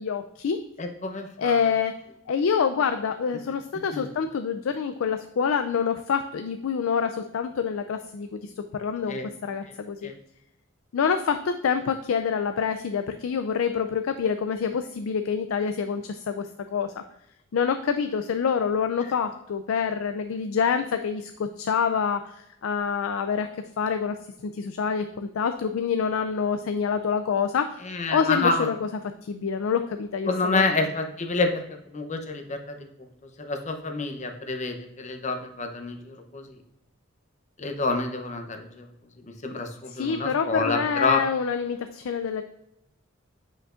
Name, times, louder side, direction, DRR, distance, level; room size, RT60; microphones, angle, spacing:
voice 1, 0.0-0.6 1.4-1.9 2.3-10.1 10.9-17.0 17.5-24.2 24.4-27.8 28.1-28.8 29.2-30.6 39.9-42.4, left 6 dB, 85° left, 8 dB, 0.4 m, -27 dB
voice 2, 0.8-1.5 3.9-4.1 9.1-9.3 9.6-9.7 10.0-10.1 27.8-28.7 30.2-31.6 31.9-32.9 33.4-36.5 37.6-38.9 39.3-41.2, left 3 dB, 35° left, 5 dB, 0.8 m, -28 dB
8.4 x 5.2 x 2.5 m, 0.83 s
head